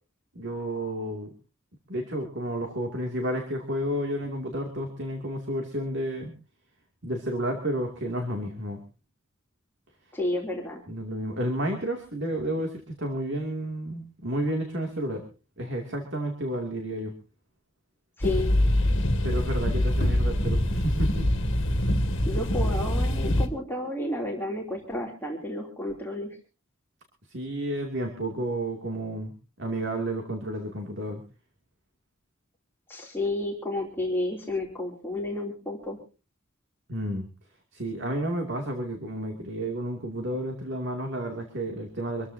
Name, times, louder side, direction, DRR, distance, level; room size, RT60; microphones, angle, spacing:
voice 1, 0.3-1.3 1.9-6.3 7.0-8.8 10.9-15.2 15.6-17.1 19.2-21.3 27.3-29.3 29.6-31.2 36.9-37.3 37.7-42.3, right 1 dB, 55° right, 3 dB, 2.6 m, -31 dB
voice 2, 10.1-10.8 18.2-18.6 22.2-26.4 32.9-36.0, left 1 dB, 10° left, -1 dB, 3.1 m, -31 dB
sound 1, 18.2-23.5, left 1 dB, 60° left, 2.3 m, -24 dB
26.0 x 14.0 x 2.8 m, 0.33 s
head